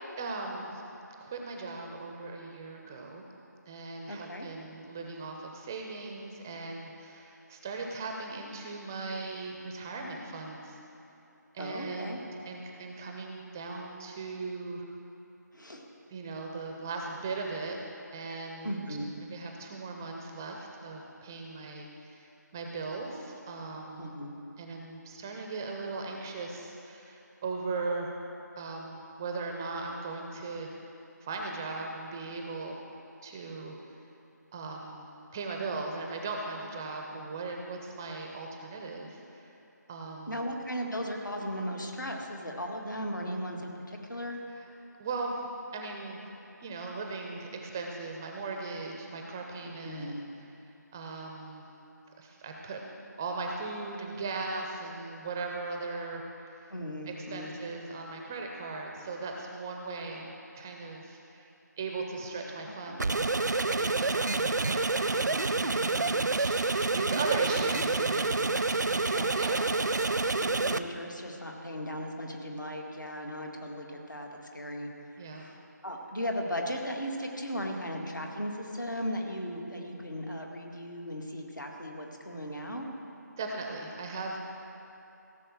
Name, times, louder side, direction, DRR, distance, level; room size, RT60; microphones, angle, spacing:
voice 1, 0.2-0.8 1.2-3.2 3.7-10.8 11.5-14.8 16.1-17.8 18.1-18.8 19.2-24.1 24.6-28.2 28.6-30.7 31.2-32.8 33.2-33.8 34.5-35.0 35.3-39.5 39.9-40.4 44.6-44.7 45.0-45.4 45.7-46.2 46.6-50.1 50.4-50.5 50.9-51.6 52.2-52.8 53.2-56.7 57.0-61.5 61.8-69.6 69.9-70.2 75.2-75.4 83.4-84.4, right 3 dB, 10° right, 1 dB, 0.4 m, -38 dB
voice 2, 4.1-4.5 11.6-12.2 15.5-15.8 18.6-19.1 24.0-24.3 40.3-44.4 49.6-50.3 56.7-57.5 62.8-63.1 69.1-69.3 70.4-74.9 75.3-82.9, equal, 85° left, 1 dB, 2.0 m, -37 dB
sound 1, 63.0-70.8, right 3 dB, 70° right, 0.5 m, -28 dB
16.5 x 6.5 x 7.6 m, 2.9 s
figure-of-eight pair, 155°, 10 cm